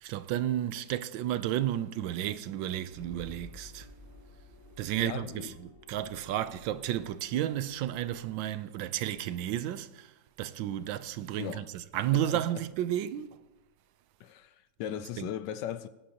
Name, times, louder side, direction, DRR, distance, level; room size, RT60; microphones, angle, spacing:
voice 1, 0.0-3.9 4.8-10.1 10.4-13.3 15.2-15.3, right 12 dB, 85° right, 1.3 m, -32 dB
sound 1, 2.9-8.3, left 1 dB, 55° left, 2.9 m, -52 dB
voice 2, 4.9-5.6 11.4-11.7 12.1-12.6 14.2-16.1, left 10 dB, 75° left, 1.2 m, -39 dB
19.0 x 10.0 x 2.9 m
omnidirectional pair, 2.0 m